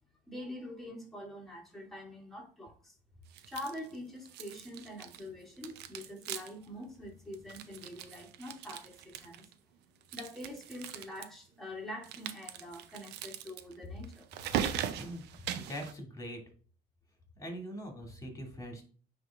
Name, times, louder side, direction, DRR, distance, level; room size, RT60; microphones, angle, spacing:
voice 1, 0.3-2.9 3.5-9.5 10.1-14.2, left 1 dB, ahead, -3 dB, 2.8 m, -45 dB
sound 1, 3.3-4.0 4.2-5.3 5.6-6.7 6.9-7.0 7.3-9.5 10.0-11.2 12.0-15.9, right 10 dB, 85° right, 0.6 m, -40 dB
voice 2, 14.9-16.4 17.4-18.8, equal, 20° left, 2 dB, 2.5 m, -42 dB
9.4 x 3.4 x 3.6 m, 0.41 s
cardioid pair, 110°, 17 cm